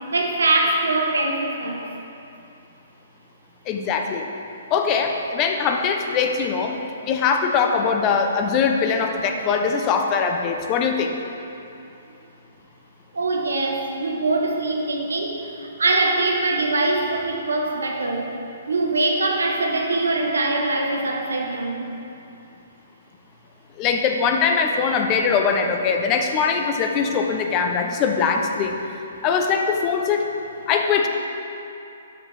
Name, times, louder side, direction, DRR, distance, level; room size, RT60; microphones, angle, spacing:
voice 1, 0.1-1.8 13.1-18.3 18.7-21.9, right 2 dB, 90° right, 1 dB, 0.9 m, -23 dB
voice 2, 3.7-4.3 4.7-11.1 23.8-28.8 29.2-30.3 30.7-31.1, left 5 dB, 30° left, 4 dB, 0.5 m, -22 dB
6.6 x 6.0 x 3.2 m, 2.7 s
hypercardioid pair, 145°, 0 cm